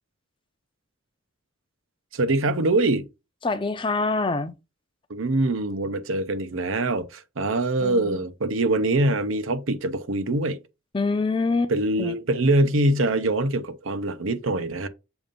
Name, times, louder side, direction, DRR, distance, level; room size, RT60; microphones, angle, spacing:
voice 1, 2.1-3.1 5.1-10.6 11.7-14.9, right 2 dB, 80° right, 0.8 m, -24 dB
voice 2, 3.4-4.5 7.8-8.1 10.9-11.7 12.0-12.1, left 3 dB, 25° left, 0.5 m, -25 dB
7.0 x 2.6 x 5.1 m
head